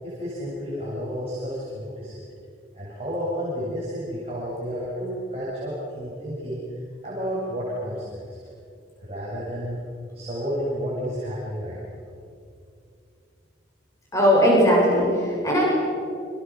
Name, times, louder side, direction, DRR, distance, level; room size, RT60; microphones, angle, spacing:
voice 1, 0.0-2.1 2.7-8.2 9.0-9.8 10.1-11.8, equal, 30° right, -7 dB, 7.5 m, -31 dB
voice 2, 14.1-15.6, equal, 15° left, -4 dB, 7.4 m, -18 dB
29.0 x 27.0 x 6.4 m, 2.5 s
head